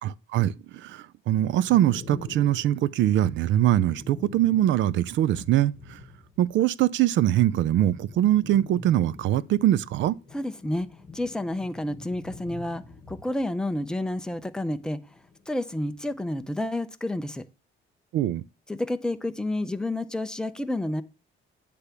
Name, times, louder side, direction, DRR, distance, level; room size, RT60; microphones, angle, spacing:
voice 1, 0.0-6.0 6.4-10.2 18.1-18.4, right 13 dB, 65° right, 0.4 m, -23 dB
sound 1, 1.3-6.6 6.9-15.5 15.8-16.5, left 4 dB, 30° left, 1.0 m, -46 dB
voice 2, 10.3-10.9 11.1-15.0 15.5-17.4 18.7-21.0, left 1 dB, 5° left, 0.5 m, -30 dB
9.8 x 3.4 x 6.8 m
cardioid pair, 150°, 21 cm